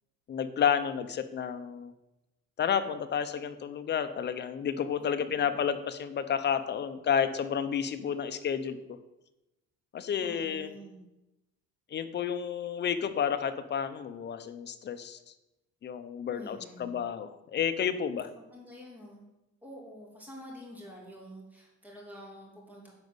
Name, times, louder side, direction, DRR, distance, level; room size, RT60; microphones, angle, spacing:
voice 1, 0.3-1.9 2.6-8.8 9.9-10.8 11.9-15.2 15.8-18.3, left 8 dB, 35° left, 10 dB, 0.8 m, -31 dB
voice 2, 5.0-5.6 10.2-11.0 16.3-17.1 18.3-19.3 19.6-23.0, equal, 5° right, -2 dB, 3.3 m, -48 dB
10.5 x 5.3 x 7.9 m, 0.93 s
cardioid pair, 160°, 29 cm